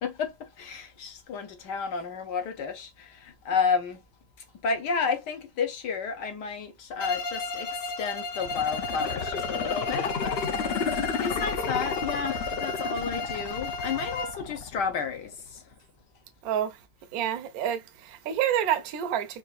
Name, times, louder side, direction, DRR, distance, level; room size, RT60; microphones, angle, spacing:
voice 1, 0.0-4.0 4.6-15.7, left 5 dB, 70° left, 1.5 m, -32 dB
Bowed string instrument, 7.0-14.5, left 3 dB, 50° left, 1.3 m, -34 dB
sound 1, 8.3-15.3 15.7-15.8, left 6 dB, 85° left, 0.5 m, -32 dB
voice 2, 16.4-16.8 17.1-19.4, right 10 dB, 65° right, 1.1 m, -28 dB
4.5 x 2.7 x 2.3 m
omnidirectional pair, 1.9 m